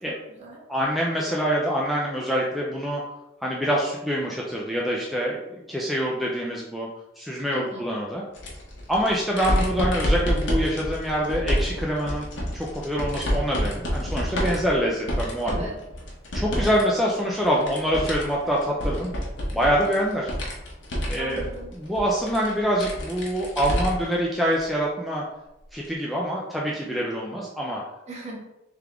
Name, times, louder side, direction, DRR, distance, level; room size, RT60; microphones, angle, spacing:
voice 1, 0.1-0.6 7.5-7.8 15.4-15.8 21.1-21.7 28.1-28.4, right 2 dB, 35° right, -2 dB, 1.0 m, -38 dB
voice 2, 0.7-3.0 3.4-6.9 7.2-8.2 8.9-12.3 12.5-15.6 16.3-19.1 19.5-20.3 21.1-21.5 21.7-25.2 25.7-27.8, equal, ahead, -4 dB, 0.4 m, -25 dB
sound 1, 8.3-16.8 17.1-24.1 24.5-24.6 25.8-25.9, equal, 80° left, 1.0 m, -28 dB
3.5 x 3.4 x 3.4 m, 0.92 s
head